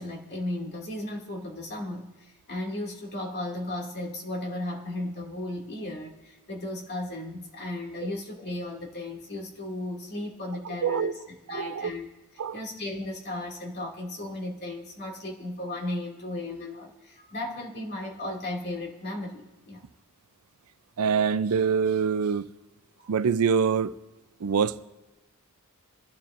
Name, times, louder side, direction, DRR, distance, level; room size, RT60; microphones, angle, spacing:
voice 1, 0.0-11.2 11.5-12.1 12.5-19.8 23.0-23.1, left 1 dB, 50° left, 2.4 m, -35 dB
voice 2, 10.7-11.1 11.5-11.9 12.4-12.6 21.0-22.5 23.1-23.9 24.4-24.8, right 6 dB, 85° right, 0.5 m, -25 dB
26.5 x 11.5 x 2.6 m
head